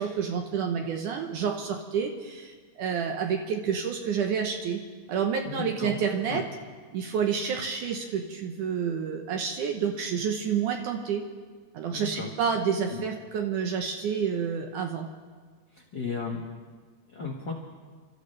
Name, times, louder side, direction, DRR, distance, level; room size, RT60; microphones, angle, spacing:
voice 1, 0.0-4.8 5.1-6.4 6.9-11.3 11.7-15.1, right 7 dB, 70° right, 3 dB, 2.1 m, -29 dB
voice 2, 5.4-6.0 6.3-6.4 11.9-12.3 12.9-13.0 15.7-16.4 17.1-17.5, left 5 dB, 70° left, -1 dB, 1.0 m, -34 dB
29.5 x 13.5 x 3.2 m, 1.5 s
omnidirectional pair, 4.4 m